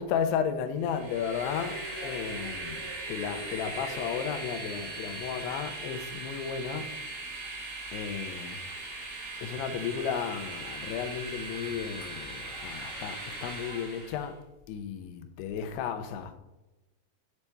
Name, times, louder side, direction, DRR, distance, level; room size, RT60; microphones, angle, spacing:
voice 1, 0.0-6.9 7.9-8.6 9.4-14.4 14.7-16.3, left 7 dB, 80° left, 2.4 m, -34 dB
Train, 0.8-14.3, right 2 dB, 55° right, 2.2 m, -39 dB
8.2 x 4.1 x 3.4 m
omnidirectional pair, 5.1 m